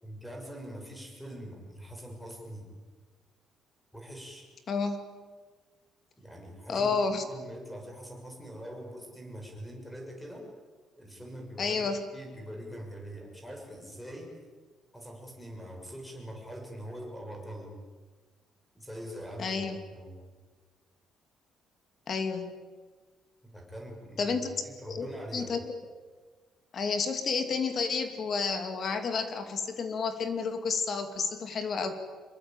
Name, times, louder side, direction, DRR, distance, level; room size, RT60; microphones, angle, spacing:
voice 1, 0.0-2.7 3.9-4.5 6.2-10.5 11.0-11.9 12.1-14.3 14.9-17.7 18.7-20.2 23.4-24.4 24.6-25.5, equal, 5° left, 1 dB, 6.3 m, -43 dB
voice 2, 4.7-5.0 6.7-7.2 11.6-12.0 19.4-19.8 22.1-22.5 24.2-24.5 24.9-25.1 25.3-25.7 26.7-31.9, left 5 dB, 40° left, 8 dB, 2.6 m, -30 dB
26.5 x 22.5 x 9.0 m, 1.4 s
cardioid pair, 160°, 0 cm